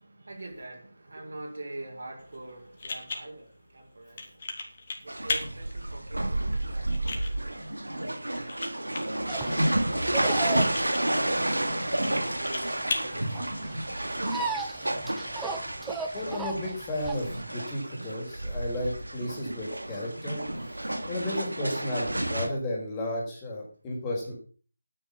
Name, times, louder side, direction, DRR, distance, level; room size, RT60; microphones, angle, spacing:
voice 1, 0.0-10.0 10.4-13.3 14.0-15.0, right 2 dB, 60° right, 6.3 m, -46 dB
sound 1, 2.2-14.2, left 3 dB, 40° left, 3.5 m, -39 dB
sound 2, 5.1-22.5, right 1 dB, 85° right, 3.3 m, -30 dB
sound 3, 9.3-17.4, right 4 dB, 5° right, 1.1 m, -37 dB
voice 2, 16.1-24.3, left 1 dB, 15° left, 5.1 m, -33 dB
12.0 x 10.0 x 7.2 m
figure-of-eight pair, 160°, 0 cm